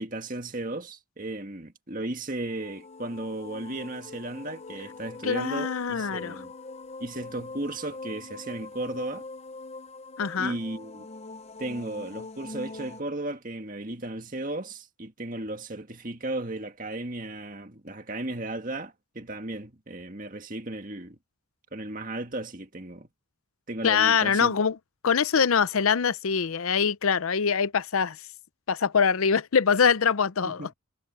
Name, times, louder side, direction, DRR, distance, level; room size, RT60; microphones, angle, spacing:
voice 1, 0.0-6.5 7.0-9.2 10.4-11.1 11.6-21.2 21.7-23.1 23.7-24.7 30.4-30.7, right 2 dB, 40° right, 1.9 m, -35 dB
sound 1, 2.4-13.0, left 3 dB, 30° left, 0.6 m, -43 dB
voice 2, 5.2-6.3 10.2-10.6 23.8-24.7 25.0-28.2 28.7-30.7, left 6 dB, 75° left, 0.6 m, -23 dB
head